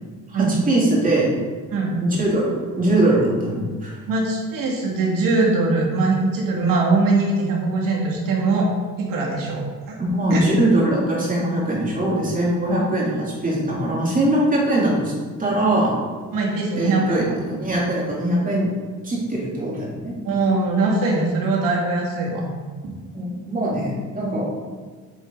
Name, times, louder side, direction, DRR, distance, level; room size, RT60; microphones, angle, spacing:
voice 1, 0.3-1.3 2.0-4.0 10.0-15.1 15.4-15.9 16.8-18.7 19.0-20.1 23.1-24.5, right 1 dB, 25° right, -5 dB, 3.2 m, -21 dB
voice 2, 1.7-2.0 4.1-8.7 9.0-10.0 10.3-10.5 16.3-17.2 20.2-22.5 22.8-22.9, right 3 dB, 75° right, -2 dB, 2.6 m, -21 dB
9.2 x 7.9 x 4.1 m, 1.5 s
cardioid pair, 140°, 33 cm